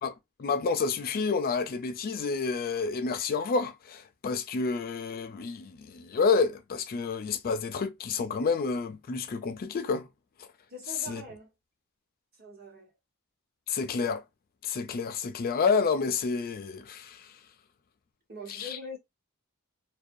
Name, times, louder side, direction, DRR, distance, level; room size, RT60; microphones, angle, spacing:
voice 1, 0.0-10.1 11.1-11.2 13.7-14.2 14.6-17.3 18.5-18.8, left 4 dB, 40° left, 0.4 m, -29 dB
voice 2, 10.7-11.5 12.4-12.9 18.3-19.0, equal, 45° right, 1.0 m, -43 dB
2.4 x 2.2 x 2.6 m
head